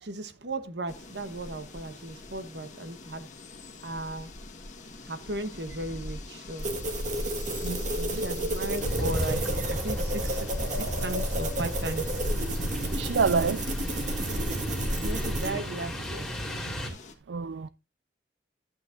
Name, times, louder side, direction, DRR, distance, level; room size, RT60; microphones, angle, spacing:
voice 1, 0.0-3.3 3.8-4.3 5.0-6.7 8.1-12.2 14.9-16.3, right 1 dB, 70° right, 1.1 m, -36 dB
sound 1, 0.9-17.1, left 3 dB, 45° left, 1.5 m, -46 dB
sound 2, 6.6-15.5, right 1 dB, 45° right, 1.7 m, -31 dB
voice 2, 7.6-8.2 12.9-13.6 17.3-17.7, right 5 dB, 90° right, 0.4 m, -28 dB
sound 3, 8.8-16.9, right 1 dB, ahead, 2.5 m, -35 dB
11.5 x 8.8 x 2.6 m
head